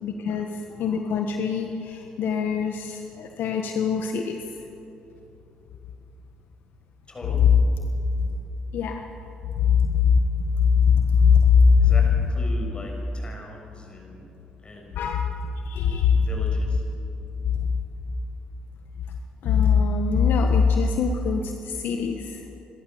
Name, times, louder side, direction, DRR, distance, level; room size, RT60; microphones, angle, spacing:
voice 1, 0.0-4.4 8.2-8.3 8.7-9.0 9.5-11.9 14.9-15.3 15.6-16.3 17.5-17.7 19.4-22.5, left 6 dB, 70° left, 4 dB, 1.4 m, -22 dB
voice 2, 7.1-7.5 11.8-14.3 14.6-15.0 16.1-16.8, left 2 dB, 30° left, 0 dB, 6.6 m, -40 dB
27.5 x 13.0 x 7.3 m, 2.9 s
supercardioid pair, 65°, 4 cm